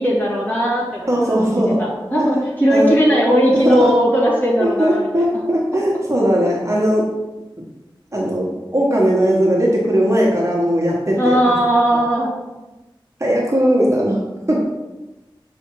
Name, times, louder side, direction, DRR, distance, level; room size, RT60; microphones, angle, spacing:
voice 1, 0.0-1.4 1.8-5.1 11.2-12.3, equal, 20° left, -6 dB, 2.3 m, -17 dB
voice 2, 1.1-1.8 2.1-2.3 2.7-2.9 3.5-3.9 4.6-7.1 8.1-11.4 13.2-14.2 14.5-14.6, equal, 35° right, -3 dB, 1.2 m, -18 dB
7.0 x 3.5 x 4.6 m, 1.1 s
wide cardioid pair, 60°, 9 cm